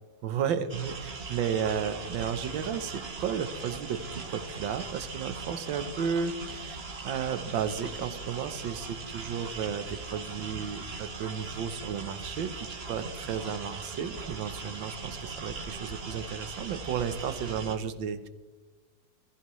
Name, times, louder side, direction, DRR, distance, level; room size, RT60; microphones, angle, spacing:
voice 1, 0.2-18.3, right 7 dB, 80° right, 11 dB, 1.7 m, -33 dB
sound 1, 0.7-17.8, right 4 dB, 35° right, 1.4 m, -40 dB
20.5 x 15.0 x 3.2 m, 1.2 s
omnidirectional pair, 2.1 m